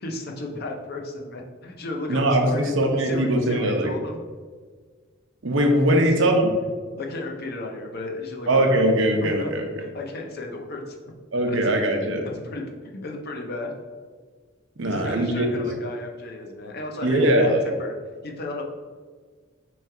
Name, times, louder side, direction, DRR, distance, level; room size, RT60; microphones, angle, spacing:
voice 1, 0.0-4.2 5.9-6.3 7.0-8.8 9.2-9.5 9.8-11.0 11.5-11.6 12.0-13.7 14.9-17.5 17.8-17.9 18.2-18.7, left 2 dB, 50° left, 2 dB, 0.6 m, -34 dB
voice 2, 2.1-3.9 5.4-6.6 8.5-9.7 11.3-12.3 14.8-15.5 17.0-17.7, right 1 dB, 75° right, 3 dB, 0.7 m, -21 dB
3.7 x 3.2 x 4.5 m, 1.6 s
head